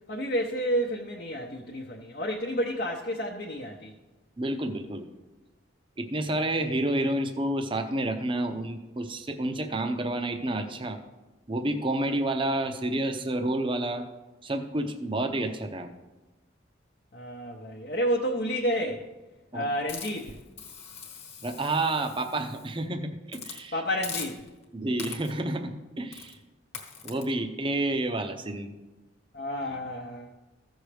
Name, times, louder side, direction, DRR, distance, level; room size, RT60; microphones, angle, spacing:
voice 1, 0.1-3.9 17.1-19.1 19.5-20.4 23.7-24.4 29.3-30.3, equal, 50° left, -1 dB, 0.8 m, -30 dB
voice 2, 4.4-5.1 6.0-11.0 11.5-14.0 14.4-15.9 19.5-19.7 21.4-23.8 24.7-26.4 27.0-28.7, right 1 dB, 25° right, 6 dB, 0.6 m, -29 dB
Hiss, 19.9-22.8 23.3-23.6 24.0-24.6 25.0-25.5 26.1-26.4 26.7-27.2, left 6 dB, 35° left, 1.3 m, -41 dB
15.0 x 6.3 x 3.4 m, 1.1 s
head